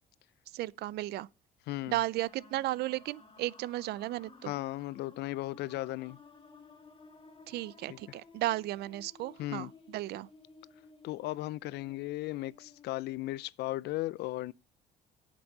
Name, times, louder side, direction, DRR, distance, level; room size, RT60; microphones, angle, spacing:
voice 1, 0.5-1.3 1.9-4.5 7.5-10.3, right 16 dB, 75° right, 0.5 m, -34 dB
voice 2, 1.7-2.0 4.4-6.2 7.9-8.0 9.4-9.7 11.0-14.5, left 17 dB, 75° left, 0.5 m, -36 dB
sound 1, 2.2-13.4, left 4 dB, 30° left, 2.2 m, -56 dB
8.7 x 7.3 x 6.6 m
cardioid pair, 110°, 17 cm